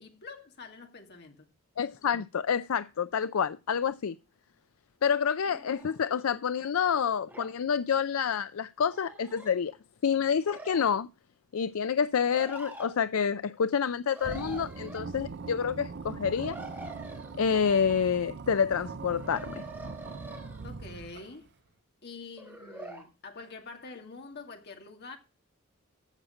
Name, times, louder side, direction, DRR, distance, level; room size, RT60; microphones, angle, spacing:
voice 1, 0.0-1.4 20.6-21.5 22.0-25.2, left 4 dB, 50° left, 2.3 m, -46 dB
voice 2, 1.8-4.2 5.0-9.8 10.0-11.1 11.5-16.6 17.4-19.5, left 7 dB, 75° left, 0.5 m, -28 dB
sound 1, 5.4-6.2 7.3-7.5 8.9-9.5 10.4-10.8 12.3-13.0 14.1-15.0 16.3-17.4 19.1-20.7 22.4-23.1, right 1 dB, 10° right, 3.8 m, -45 dB
sound 2, 14.2-21.5, right 4 dB, 55° right, 0.6 m, -41 dB
15.0 x 6.5 x 4.9 m
head